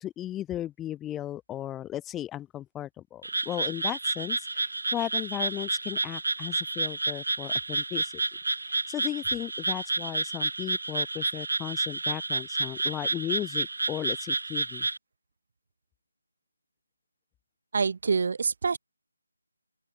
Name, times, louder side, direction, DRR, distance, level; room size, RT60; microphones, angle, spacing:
voice 1, 0.0-8.2 8.9-14.9, left 12 dB, 10° left, 0.7 m, -36 dB
Frog, 3.2-15.0, right 3 dB, 65° right, 2.5 m, -30 dB
voice 2, 17.7-18.8, right 5 dB, 45° right, 2.1 m, -26 dB
open air
figure-of-eight pair, 155°, 0 cm